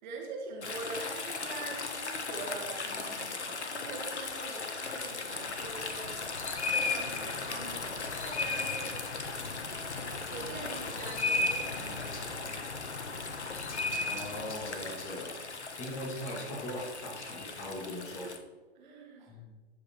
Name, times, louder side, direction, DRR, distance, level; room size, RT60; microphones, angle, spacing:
voice 1, 0.0-6.2 6.7-9.0 9.9-12.7 15.4-15.5 18.2-18.3 18.8-19.4, right 4 dB, 45° right, 1 dB, 2.3 m, -44 dB
sound 1, 0.6-18.4, left 3 dB, 80° left, 1.5 m, -36 dB
voice 2, 14.0-15.4 15.8-18.3 19.3-19.5, left 1 dB, 20° left, 0 dB, 2.3 m, -40 dB
13.5 x 5.4 x 4.5 m, 1.3 s
hypercardioid pair, 130°, 33 cm